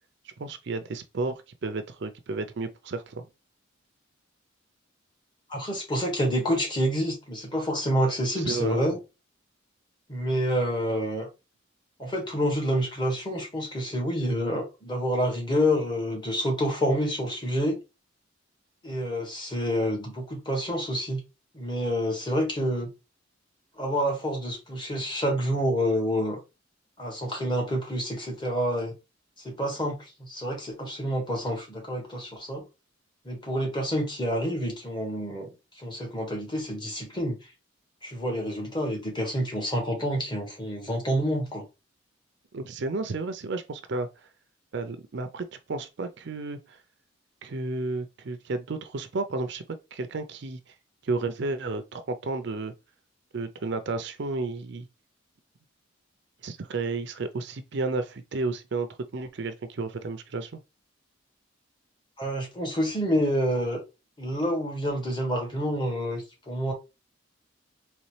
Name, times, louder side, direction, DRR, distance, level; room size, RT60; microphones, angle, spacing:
voice 1, 0.2-3.3 8.4-8.9 42.5-44.1 44.7-46.8 47.4-49.6 49.9-50.7 51.0-52.7 53.3-54.9 56.4-58.9 59.1-60.6, right 3 dB, 60° right, 0.5 m, -32 dB
voice 2, 5.5-9.0 10.1-11.3 12.0-17.8 18.8-21.2 21.5-22.9 23.8-26.4 27.0-28.9 29.4-32.6 33.2-35.5 35.8-37.4 38.0-41.6 62.2-63.8 64.2-66.7, equal, 25° left, 1.6 m, -28 dB
4.2 x 3.1 x 3.2 m
head